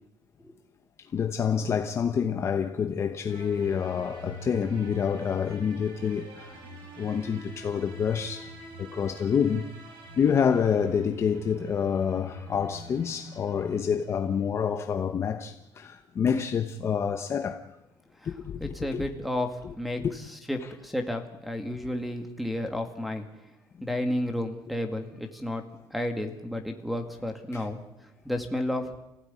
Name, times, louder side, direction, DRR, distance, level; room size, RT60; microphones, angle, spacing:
voice 1, 1.1-6.6 7.0-8.5 8.8-9.7 10.2-17.6 18.2-19.0 20.0-20.1 27.5-27.6, left 7 dB, 30° left, 1.0 m, -27 dB
sound 1, 3.3-14.6, right 1 dB, 60° right, 5.5 m, -46 dB
voice 2, 18.6-23.2 23.8-25.6 25.9-27.8 28.2-28.9, left 1 dB, ahead, 2.0 m, -32 dB
28.0 x 16.0 x 9.8 m
cardioid pair, 180°, 9 cm